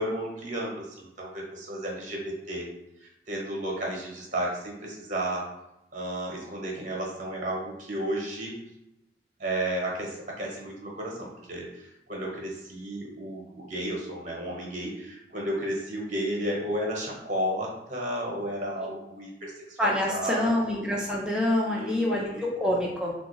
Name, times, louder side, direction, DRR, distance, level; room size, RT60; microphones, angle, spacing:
voice 1, 0.0-2.7 3.0-5.5 5.9-8.6 9.4-20.7 21.6-22.5, right 1 dB, 40° right, -2 dB, 0.8 m, -33 dB
voice 2, 19.8-23.1, left 1 dB, 5° right, -3 dB, 0.4 m, -26 dB
3.5 x 2.3 x 3.0 m, 0.89 s
head